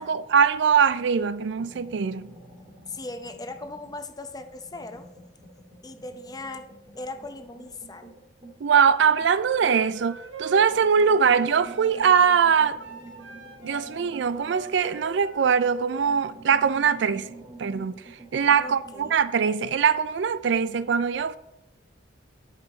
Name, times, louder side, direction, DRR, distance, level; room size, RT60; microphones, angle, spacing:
voice 1, 0.0-2.3 8.6-12.8 13.6-17.3 17.6-21.4, right 6 dB, 65° right, 0.4 m, -22 dB
sound 1, 1.6-4.0 4.4-10.0 10.4-15.5 15.8-19.2, right 2 dB, 30° right, 1.5 m, -48 dB
voice 2, 2.9-5.1 5.8-6.7 7.0-8.1 18.6-19.1, left 2 dB, 20° left, 0.6 m, -38 dB
Flute - A natural minor - bad-timbre-staccato, 9.4-16.0, right 4 dB, 80° right, 1.5 m, -43 dB
9.7 x 5.3 x 4.4 m
head